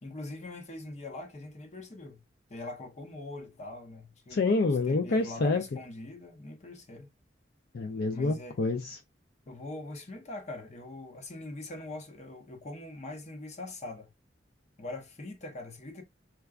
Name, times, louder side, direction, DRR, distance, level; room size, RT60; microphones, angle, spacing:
voice 1, 0.0-2.2 2.5-4.4 4.9-7.1 8.1-8.6 9.5-14.1 14.8-16.0, left 2 dB, 40° left, 0.8 m, -42 dB
voice 2, 4.3-5.6 7.7-9.0, left 3 dB, 60° left, 0.4 m, -27 dB
4.6 x 2.2 x 2.3 m
head